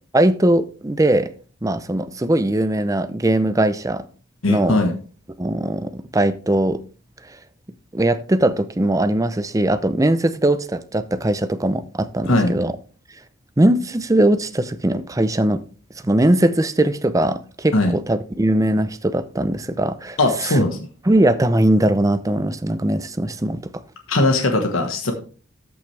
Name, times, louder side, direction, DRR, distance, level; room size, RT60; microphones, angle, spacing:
voice 1, 0.1-1.3 1.6-4.0 4.5-4.7 5.4-6.8 7.9-12.7 13.6-15.6 16.0-20.2 20.5-20.6 21.1-23.8, right 1 dB, 15° right, 0.6 m, -20 dB
voice 2, 4.4-4.9 12.2-12.6 17.7-17.9 20.2-20.8 24.1-25.1, left 2 dB, 80° left, 1.3 m, -19 dB
13.5 x 6.0 x 3.3 m
head